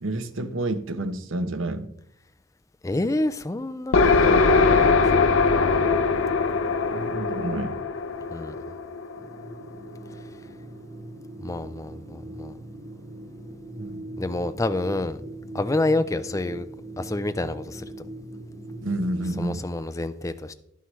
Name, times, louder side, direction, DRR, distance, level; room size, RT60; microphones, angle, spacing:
voice 1, 0.0-1.9 6.9-7.8 13.8-14.0 18.8-19.6, right 1 dB, 70° right, 9 dB, 0.9 m, -29 dB
voice 2, 2.8-4.0 4.2-6.0 8.3-8.6 11.4-12.6 14.2-15.2 15.5-16.7 17.0-17.9 19.4-20.5, left 2 dB, 15° left, 11 dB, 0.4 m, -28 dB
sound 1, 3.9-9.5, left 4 dB, 70° left, 0.6 m, -21 dB
sound 2, 9.2-19.3, right 1 dB, 55° right, 3.2 m, -40 dB
11.0 x 9.2 x 3.2 m, 0.76 s
head